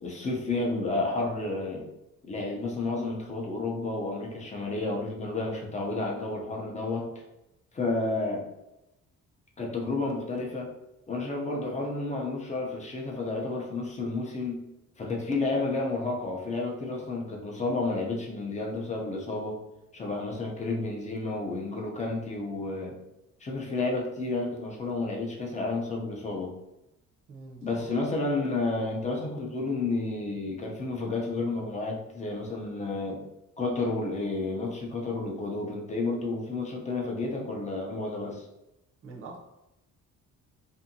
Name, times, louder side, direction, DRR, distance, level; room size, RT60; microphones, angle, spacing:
voice 1, 0.0-1.8 2.2-7.0 7.7-8.4 9.6-10.7 11.1-14.6 15.0-19.6 19.9-22.9 23.4-26.5 27.6-33.2 33.6-38.5, left 3 dB, 25° left, 0 dB, 0.5 m, -31 dB
voice 2, 27.3-27.9 39.0-39.4, right 3 dB, 40° right, -2 dB, 0.6 m, -44 dB
2.6 x 2.6 x 2.6 m, 0.91 s
cardioid pair, 145°, 31 cm